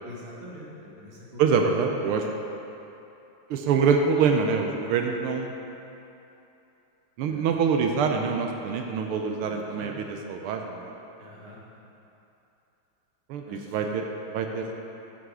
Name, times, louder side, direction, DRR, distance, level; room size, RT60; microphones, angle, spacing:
voice 1, 0.0-0.7 1.0-1.4 1.7-1.9 7.2-7.4 9.4-9.9 11.2-11.6 13.5-13.7, equal, 30° right, -5 dB, 1.6 m, -43 dB
voice 2, 1.4-2.3 3.5-5.5 7.2-10.9 13.3-14.8, right 5 dB, 85° right, 3 dB, 1.5 m, -25 dB
7.7 x 6.2 x 6.8 m, 2.9 s
omnidirectional pair, 2.4 m